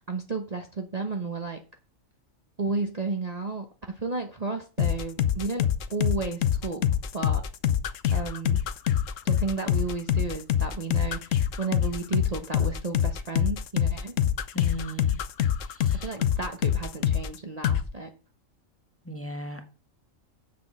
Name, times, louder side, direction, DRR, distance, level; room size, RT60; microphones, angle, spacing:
voice 1, 0.0-1.6 2.6-5.7 5.9-6.8 7.1-7.4 8.1-8.6 9.2-14.1 15.9-18.1, right 3 dB, 35° right, 1.0 m, -32 dB
sound 1, 4.8-17.4 17.6-17.8, left 10 dB, 75° left, 1.1 m, -25 dB
voice 2, 14.5-15.2 15.7-16.1 19.0-19.7, left 1 dB, 10° left, 1.2 m, -37 dB
7.6 x 6.1 x 7.5 m
omnidirectional pair, 1.4 m